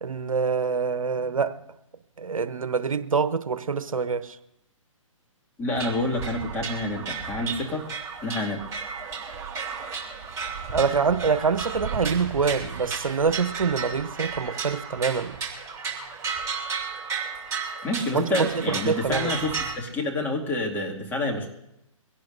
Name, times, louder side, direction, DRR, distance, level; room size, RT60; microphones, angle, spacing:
voice 1, 0.0-1.5 2.2-4.4 10.7-15.3 18.1-19.4, right 5 dB, 75° right, 13 dB, 1.0 m, -25 dB
voice 2, 5.6-7.8 8.2-8.6 17.8-21.5, left 2 dB, 10° left, -1 dB, 2.3 m, -28 dB
sound 1, 5.7-19.7, right 5 dB, 15° right, 2.6 m, -33 dB
23.5 x 17.0 x 2.7 m, 0.83 s
figure-of-eight pair, 140°, 17 cm